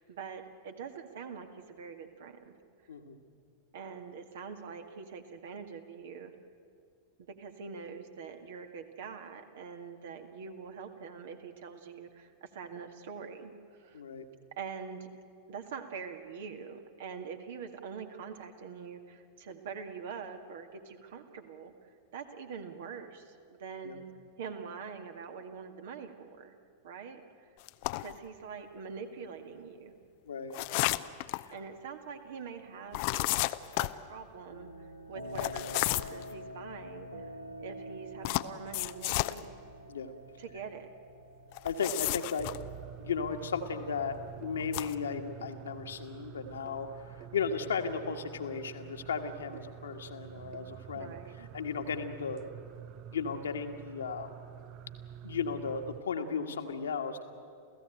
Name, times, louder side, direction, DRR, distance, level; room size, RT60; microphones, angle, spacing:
voice 1, 0.0-2.5 3.7-6.3 7.3-14.0 14.5-15.1 15.5-24.0 24.4-26.6 26.8-27.5 28.0-30.0 31.5-33.3 33.8-37.3 37.6-39.5 40.4-40.9 50.9-51.5, right 6 dB, 55° right, 6 dB, 1.9 m, -44 dB
voice 2, 13.9-14.2 23.8-24.0 30.2-30.9 31.4-31.5 39.9-40.2 41.6-42.5 43.0-46.9 47.3-52.4 53.1-54.3 55.2-57.2, left 5 dB, 70° left, 5 dB, 1.6 m, -35 dB
sound 1, 27.7-28.2 30.5-31.5 32.9-34.0 35.4-36.2 38.2-39.4 41.5-42.6 44.6-44.9, left 21 dB, 45° left, 0.6 m, -31 dB
sound 2, 34.5-52.5, equal, 85° right, 1.6 m, -49 dB
sound 3, 42.4-56.0, right 10 dB, 40° right, 0.6 m, -48 dB
28.5 x 15.5 x 9.0 m, 2.3 s
figure-of-eight pair, 90°, 0 cm